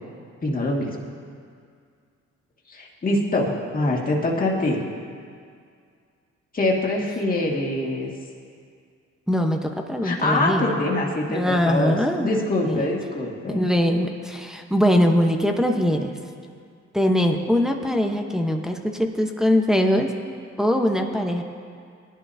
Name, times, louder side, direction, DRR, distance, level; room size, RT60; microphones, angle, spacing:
voice 1, 0.4-1.0 2.7-4.8 6.5-8.1 10.0-13.6, left 2 dB, 30° left, -3 dB, 2.1 m, -24 dB
voice 2, 9.3-10.8 11.3-12.3 12.6-12.9 13.5-16.1 16.9-20.2 20.6-21.4, equal, ahead, 2 dB, 1.0 m, -22 dB
18.0 x 11.0 x 2.7 m, 2.2 s
cardioid pair, 90°, 30 cm